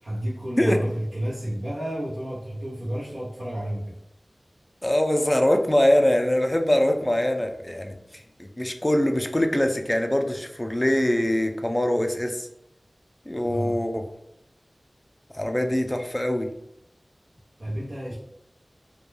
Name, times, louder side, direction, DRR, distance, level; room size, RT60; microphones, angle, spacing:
voice 1, 0.0-4.0 13.4-13.8 17.6-18.1, equal, 85° right, -11 dB, 0.7 m, -31 dB
voice 2, 4.8-12.5 13.3-13.9 15.3-16.5, left 1 dB, 20° left, 4 dB, 0.3 m, -23 dB
2.2 x 2.2 x 3.1 m, 0.81 s
wide cardioid pair, 60°, 0 cm